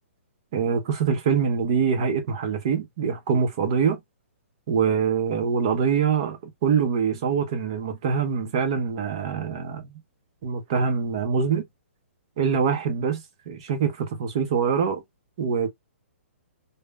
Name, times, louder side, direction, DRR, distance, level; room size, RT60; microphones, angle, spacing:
voice 1, 0.5-4.0 4.7-9.9 10.4-11.6 12.4-15.0 15.4-15.7, right 6 dB, 25° right, 0.5 m, -24 dB
2.0 x 2.0 x 3.2 m
hypercardioid pair, 180°, 7 cm